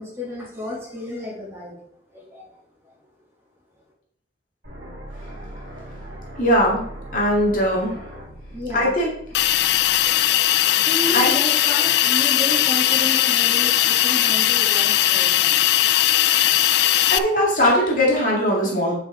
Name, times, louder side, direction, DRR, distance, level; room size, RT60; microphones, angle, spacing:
voice 1, 0.0-1.8 2.1-2.5 2.8-2.9 8.5-8.9 10.6-15.6, left 1 dB, 15° right, -6 dB, 2.8 m, -32 dB
sound 1, 4.6-10.6, right 1 dB, 85° right, 2.3 m, -39 dB
voice 2, 6.4-6.8 7.1-8.0 8.7-9.1 11.1-11.3 17.1-18.9, equal, 45° left, -2 dB, 2.1 m, -19 dB
Hiss, 9.3-17.2, left 13 dB, 70° left, 0.3 m, -19 dB
8.7 x 6.0 x 3.7 m, 0.67 s
head